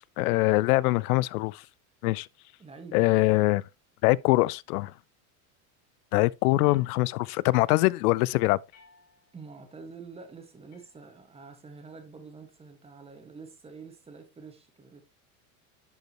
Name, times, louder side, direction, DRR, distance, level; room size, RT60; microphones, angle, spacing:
voice 1, 0.0-1.6 2.0-2.3 2.9-3.6 4.0-4.9 6.1-8.6, left 20 dB, 90° left, 0.6 m, -23 dB
voice 2, 2.6-3.5 9.3-15.0, right 4 dB, 15° right, 1.7 m, -47 dB
sound 1, 6.6-7.5 8.7-9.5 10.7-11.5, left 5 dB, 35° left, 4.3 m, -60 dB
11.0 x 5.2 x 3.0 m
supercardioid pair, 150°, 43 cm